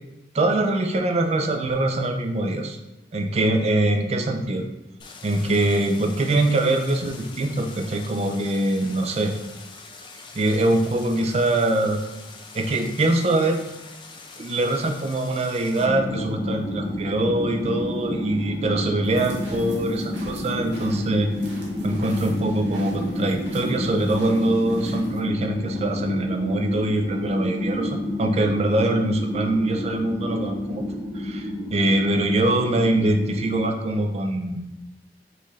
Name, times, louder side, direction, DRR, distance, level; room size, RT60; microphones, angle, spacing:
voice 1, 0.3-2.8 3.1-4.6 5.2-9.3 10.3-12.0 12.5-13.6 14.3-21.3 21.8-30.8 31.1-34.6, right 1 dB, 35° right, 4 dB, 0.4 m, -23 dB
Stream, 5.0-15.9, left 4 dB, 25° left, 0.4 m, -44 dB
sound 1, 15.8-33.7, left 1 dB, 15° right, 1.0 m, -30 dB
sound 2, 19.0-25.2, right 1 dB, 80° right, 1.0 m, -45 dB
5.3 x 2.5 x 3.2 m, 1.0 s
head